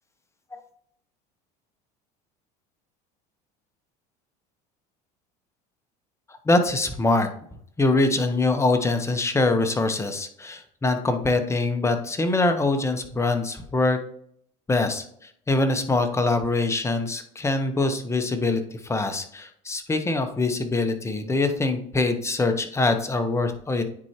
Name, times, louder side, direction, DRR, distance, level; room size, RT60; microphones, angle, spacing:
voice 1, 6.5-7.3 7.8-14.0 14.7-23.8, left 2 dB, 15° left, 7 dB, 1.0 m, -24 dB
9.7 x 4.4 x 2.9 m, 0.65 s
supercardioid pair, 100°, 17 cm